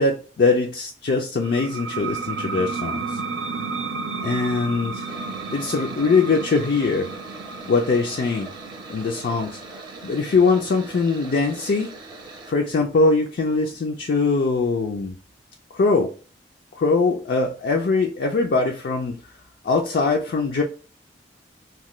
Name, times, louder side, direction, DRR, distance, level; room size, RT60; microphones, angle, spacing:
voice 1, 0.0-3.2 4.2-5.1 5.5-7.1 7.6-8.5 8.9-11.9 12.5-15.1 15.7-16.1 16.8-19.2 19.6-20.6, left 4 dB, 60° left, 0.4 m, -22 dB
sound 1, 1.4-12.7, right 4 dB, 90° right, 0.4 m, -33 dB
sound 2, 5.1-12.5, right 3 dB, 25° right, 0.6 m, -41 dB
2.9 x 2.2 x 3.0 m
head